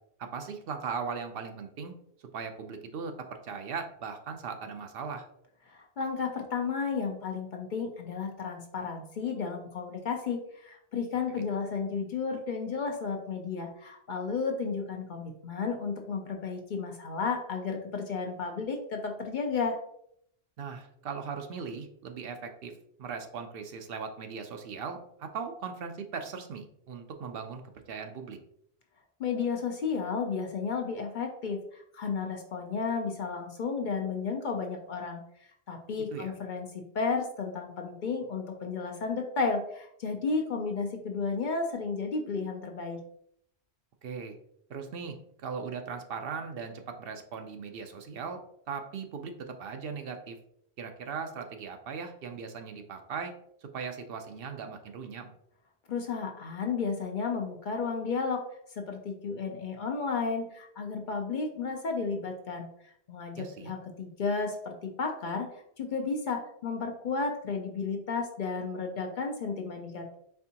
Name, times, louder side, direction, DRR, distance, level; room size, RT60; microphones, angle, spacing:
voice 1, 0.2-1.9 2.3-5.3 11.3-11.5 20.6-22.7 23.0-27.6 27.9-28.4 36.1-36.3 44.0-44.4 44.7-45.2 45.4-48.4 48.7-50.4 50.8-53.3 53.7-55.3 63.4-63.7, right 5 dB, 65° right, 5 dB, 0.7 m, -38 dB
voice 2, 5.7-19.8 29.2-35.2 35.7-36.7 36.9-43.0 55.9-58.4 58.8-62.7 63.1-65.5 65.8-70.1, left 5 dB, 55° left, 3 dB, 0.6 m, -33 dB
4.4 x 3.5 x 2.8 m, 0.71 s
omnidirectional pair, 1.1 m